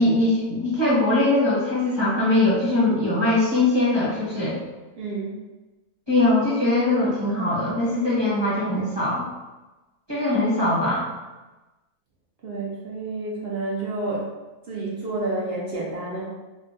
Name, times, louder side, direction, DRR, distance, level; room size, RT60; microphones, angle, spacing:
voice 1, 0.0-4.5 6.1-9.2 10.1-11.1, left 2 dB, 25° right, -9 dB, 0.7 m, -21 dB
voice 2, 5.0-5.3 12.4-14.2 14.7-16.3, right 2 dB, 60° right, -4 dB, 0.7 m, -29 dB
3.5 x 2.1 x 2.6 m, 1.1 s
omnidirectional pair, 1.5 m